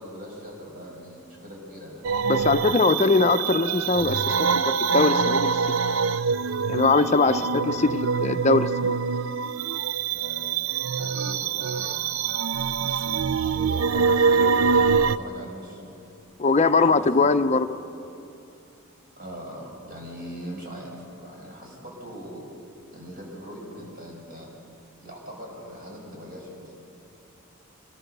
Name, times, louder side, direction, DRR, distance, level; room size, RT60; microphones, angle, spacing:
voice 1, 0.0-2.0 7.2-7.5 10.1-12.1 12.8-16.2 16.6-17.5 19.2-22.5 22.9-24.5 25.0-26.7, equal, 40° right, -1 dB, 5.8 m, -41 dB
sound 1, 2.0-15.2, right 5 dB, 65° right, 0.5 m, -24 dB
voice 2, 2.3-5.5 6.7-7.3 7.8-9.0 16.4-17.7, left 3 dB, 30° left, 8 dB, 0.6 m, -21 dB
26.0 x 20.5 x 6.7 m, 2.7 s
head